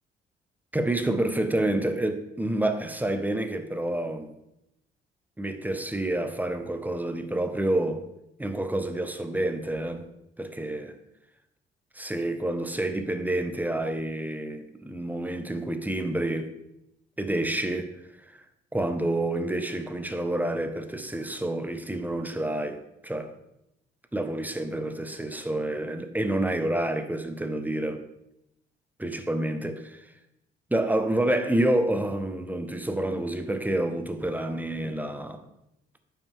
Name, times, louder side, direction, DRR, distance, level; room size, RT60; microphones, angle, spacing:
voice 1, 0.7-4.3 5.4-8.0 8.4-10.1 10.4-10.9 11.9-16.5 17.2-18.0 18.7-23.3 24.1-28.0 29.0-30.0 30.7-35.4, right 1 dB, 10° right, 0.8 m, -28 dB
9.0 x 5.6 x 3.7 m
cardioid pair, 90°, 20 cm